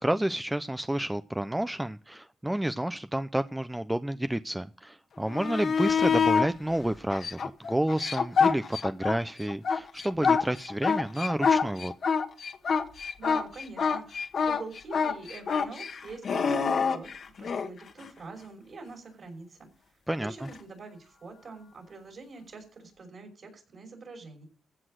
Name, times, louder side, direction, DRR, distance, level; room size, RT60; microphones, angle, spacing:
voice 1, 0.0-7.4 7.7-11.9 20.1-20.3, right 1 dB, 10° right, 11 dB, 0.5 m, -30 dB
sound 1, 5.2-6.5 7.1-9.2 9.5-17.7 20.5-20.6, left 6 dB, 65° left, 1.5 m, -26 dB
voice 2, 13.2-17.1 17.4-19.7 20.2-24.4, right 3 dB, 60° right, 2 dB, 5.8 m, -45 dB
15.5 x 6.1 x 6.4 m, 0.39 s
cardioid pair, 75°, 0 cm